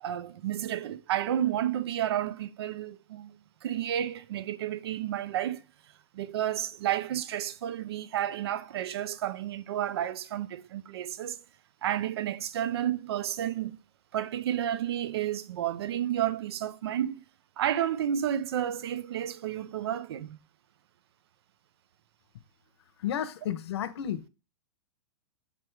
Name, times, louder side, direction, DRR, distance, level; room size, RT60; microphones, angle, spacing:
voice 1, 0.0-3.4 3.6-5.6 6.1-11.4 11.8-13.8 14.1-17.2 17.6-20.4, right 11 dB, 60° right, 0.5 m, -31 dB
voice 2, 23.0-24.3, left 10 dB, 65° left, 0.8 m, -32 dB
7.2 x 3.4 x 4.5 m
supercardioid pair, 170°, 15 cm